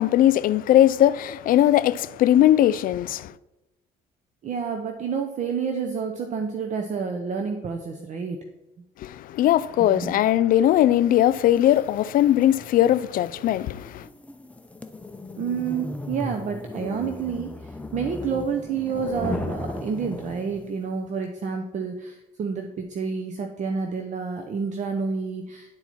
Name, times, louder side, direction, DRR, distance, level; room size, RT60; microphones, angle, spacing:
voice 1, 0.0-3.3 9.0-14.1, left 12 dB, 55° left, 0.4 m, -19 dB
voice 2, 4.4-8.4 9.9-10.2 15.4-25.8, right 5 dB, 45° right, 0.8 m, -29 dB
sound 1, 11.4-20.8, left 1 dB, 10° left, 0.6 m, -36 dB
10.5 x 4.5 x 4.2 m
cardioid pair, 110°, 17 cm